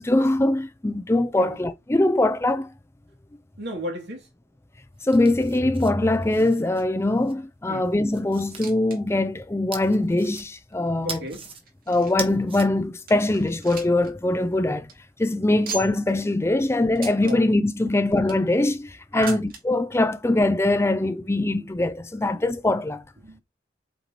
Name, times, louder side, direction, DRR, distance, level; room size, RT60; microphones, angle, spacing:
voice 1, 0.0-2.7 5.0-11.2 11.9-14.9 15.2-23.0, left 2 dB, 15° left, 0.5 m, -22 dB
voice 2, 3.6-4.3 7.7-7.9 11.0-11.5 15.5-15.6 17.2-17.4 17.8-18.0 19.1-19.4 21.6-21.7 23.2-23.4, equal, 70° right, 2.8 m, -34 dB
sound 1, 5.0-7.3 7.8-8.7 9.7-10.7 11.1-11.6 12.0-12.7, right 5 dB, 30° right, 1.4 m, -39 dB
sound 2, 8.5-9.0 9.3-9.4 10.0-10.1 10.9-12.3 12.7-12.8 13.1-14.1 14.4-14.5 14.8-14.9 15.6-16.1 16.9-17.4 18.0-18.5 19.2-19.6 20.6-20.7 20.9-21.0 21.8-21.9, right 4 dB, 55° right, 2.4 m, -38 dB
8.0 x 4.4 x 3.0 m
head